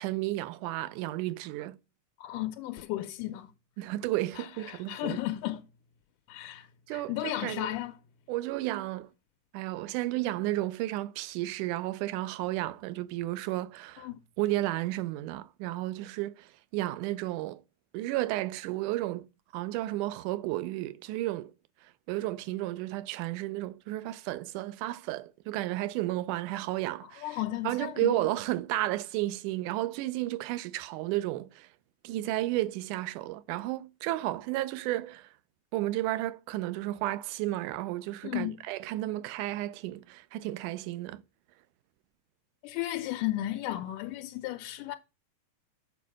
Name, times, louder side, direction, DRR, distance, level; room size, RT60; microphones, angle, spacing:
voice 1, 0.0-1.8 3.8-5.2 6.9-7.8 8.3-9.1 9.5-14.1 14.4-17.6 17.9-19.3 19.5-21.5 21.8-27.4 27.6-31.7 32.0-35.3 35.7-41.2, right 16 dB, 90° right, 2.1 m, -33 dB
voice 2, 2.2-3.5 4.4-5.6 6.3-8.0 14.0-14.2 27.2-28.2 38.2-38.5 42.6-45.0, left 15 dB, 85° left, 2.1 m, -34 dB
6.9 x 5.4 x 6.1 m
omnidirectional pair, 3.5 m